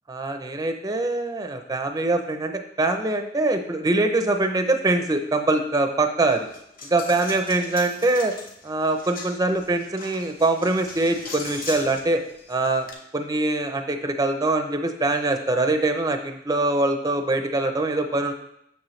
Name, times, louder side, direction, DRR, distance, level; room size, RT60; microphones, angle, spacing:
voice 1, 0.1-6.5 6.9-8.3 8.6-12.2 12.5-12.9 13.1-18.3, right 2 dB, 20° right, 6 dB, 0.5 m, -23 dB
Coin (dropping), 6.2-12.9, left 3 dB, 50° left, 1.1 m, -40 dB
7.6 x 6.7 x 3.2 m, 0.76 s
head